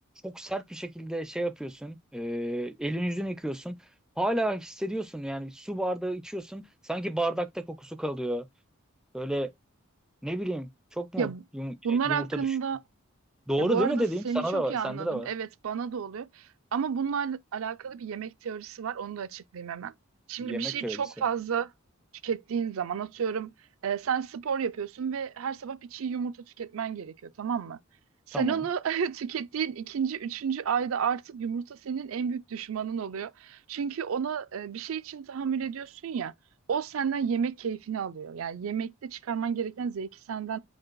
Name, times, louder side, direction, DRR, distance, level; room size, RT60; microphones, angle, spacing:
voice 1, 0.2-3.8 4.2-8.5 9.1-9.5 10.2-12.6 13.5-15.3 20.4-21.0 28.3-28.7, right 1 dB, 5° right, 0.4 m, -31 dB
voice 2, 11.8-12.8 13.6-16.5 16.7-19.9 20.3-21.7 22.2-23.5 23.8-27.8 28.3-36.3 36.7-40.6, right 7 dB, 75° right, 0.4 m, -31 dB
5.0 x 2.3 x 4.5 m
head